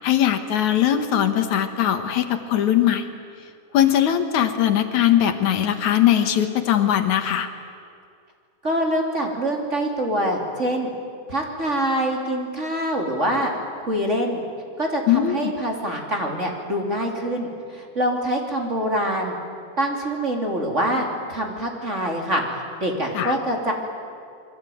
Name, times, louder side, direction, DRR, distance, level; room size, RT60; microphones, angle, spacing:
voice 1, 0.0-3.0 3.7-7.5 15.1-15.5 23.1-23.4, left 10 dB, 70° left, 8 dB, 2.7 m, -20 dB
voice 2, 8.6-10.9 11.3-13.5 13.8-14.4 14.8-19.4 19.8-22.4 22.8-23.7, equal, 25° right, 1 dB, 3.2 m, -25 dB
27.5 x 23.0 x 9.3 m, 2.4 s
omnidirectional pair, 3.5 m